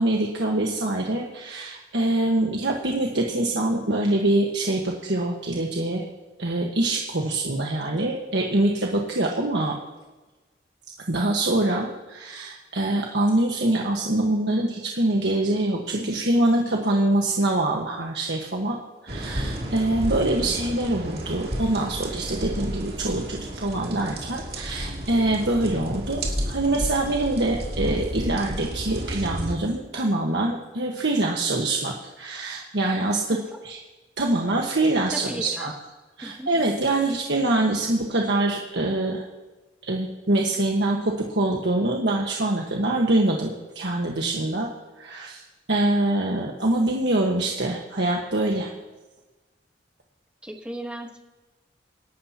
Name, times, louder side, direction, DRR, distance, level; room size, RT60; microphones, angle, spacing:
voice 1, 0.0-6.0 6.4-9.8 11.1-18.8 19.0-33.4 33.6-33.8 34.2-35.7 36.2-39.2 39.8-44.7 45.0-45.4 45.7-48.7, right 2 dB, 75° right, 0 dB, 1.4 m, -24 dB
sound 1, 19.1-29.5, equal, 55° right, 2.7 m, -32 dB
voice 2, 35.1-35.7 36.2-36.5 50.4-51.2, right 1 dB, 5° right, 3 dB, 1.3 m, -36 dB
26.5 x 12.0 x 2.9 m, 1.2 s
head